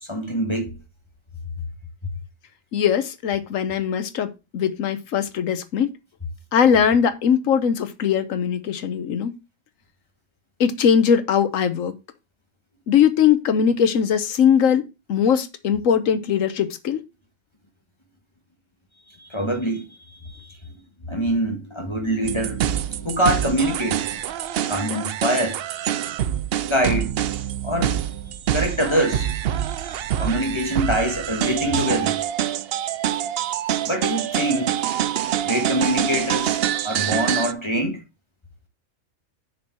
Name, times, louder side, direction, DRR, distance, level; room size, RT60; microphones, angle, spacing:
voice 1, 0.1-0.8 19.2-20.6 21.0-24.0 24.7-25.6 26.6-27.1 27.6-29.6 29.8-32.2 33.8-34.8 35.4-36.6 36.8-38.0, equal, 20° left, 1.6 m, -25 dB
voice 2, 2.7-5.9 6.5-9.3 10.6-12.0 12.9-14.8 15.1-17.0, left 8 dB, 80° left, 1.2 m, -20 dB
sound 1, 22.2-37.5, right 11 dB, 65° right, 0.6 m, -25 dB
6.4 x 4.7 x 5.9 m
omnidirectional pair, 1.4 m